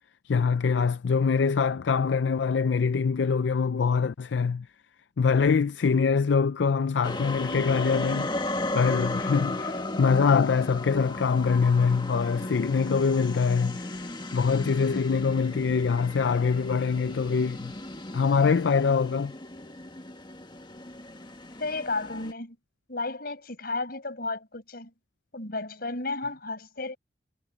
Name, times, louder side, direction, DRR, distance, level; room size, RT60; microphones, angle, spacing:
voice 1, 0.2-4.7 5.2-8.3 8.7-17.7 18.1-19.3, left 5 dB, 80° left, 0.4 m, -24 dB
sound 1, 7.0-22.3, left 2 dB, 25° left, 1.6 m, -35 dB
voice 2, 21.6-22.6 22.9-24.9 25.3-27.0, left 3 dB, 55° left, 5.9 m, -33 dB
head